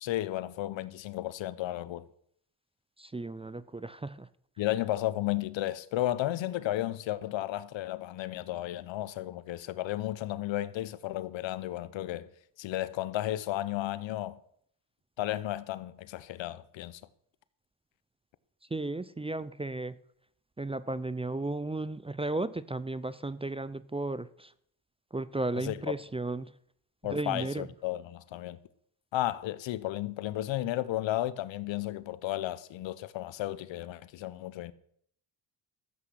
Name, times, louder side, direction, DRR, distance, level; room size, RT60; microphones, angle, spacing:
voice 1, 0.0-2.1 4.6-12.3 12.6-14.4 15.2-17.0 25.7-25.8 27.0-28.6 29.1-34.7, left 14 dB, 70° left, 0.9 m, -33 dB
voice 2, 3.0-4.3 18.6-20.0 20.6-24.5 25.1-26.5 27.0-27.7, right 2 dB, 10° right, 0.5 m, -34 dB
14.0 x 8.3 x 6.4 m
supercardioid pair, 70°, 47 cm